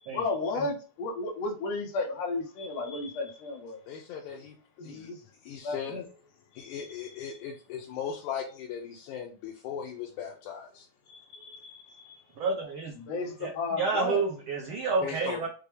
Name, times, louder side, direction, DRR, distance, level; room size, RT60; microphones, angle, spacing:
voice 1, 0.0-3.8 4.8-5.2 5.6-6.0 6.5-6.9 11.1-12.2 13.0-14.2, left 3 dB, 70° left, 1.8 m, -34 dB
voice 2, 3.9-4.6 4.8-5.1 5.4-6.1 6.5-10.9 15.0-15.5, left 7 dB, 85° left, 2.1 m, -38 dB
voice 3, 12.4-12.9 13.4-15.5, right 4 dB, 90° right, 1.1 m, -30 dB
6.1 x 2.2 x 3.3 m
omnidirectional pair, 3.4 m